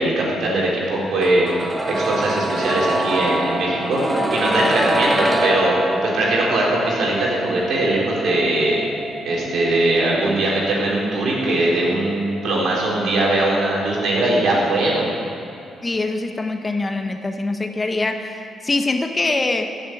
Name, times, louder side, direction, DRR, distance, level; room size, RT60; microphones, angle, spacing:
voice 1, 0.0-1.5 1.9-5.7 6.0-8.8 9.2-15.1, right 2 dB, 65° right, -3 dB, 3.8 m, -20 dB
sound 1, 1.2-13.0 13.3-13.4, right 1 dB, 20° right, 1.5 m, -25 dB
voice 2, 15.8-19.7, left 2 dB, 30° left, 6 dB, 1.2 m, -23 dB
15.0 x 7.3 x 8.6 m, 2.5 s
hypercardioid pair, 50°, 0 cm